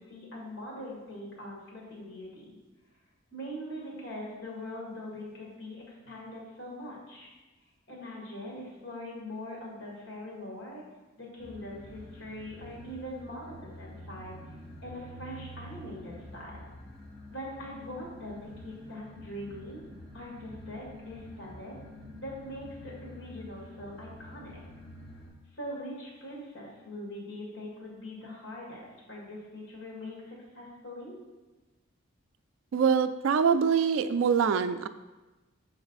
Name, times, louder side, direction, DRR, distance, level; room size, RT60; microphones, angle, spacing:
voice 1, 0.0-2.6 3.3-7.3 7.9-10.8 11.2-14.4 14.8-16.7 17.3-19.8 20.1-21.8 22.2-24.6 25.5-31.2, left 1 dB, 65° left, -3 dB, 2.0 m, -42 dB
sound 1, 11.4-25.3, left 1 dB, 30° left, 2.0 m, -48 dB
voice 2, 32.7-34.9, right 6 dB, 75° right, 12 dB, 0.3 m, -24 dB
6.8 x 3.9 x 4.0 m, 1.2 s
head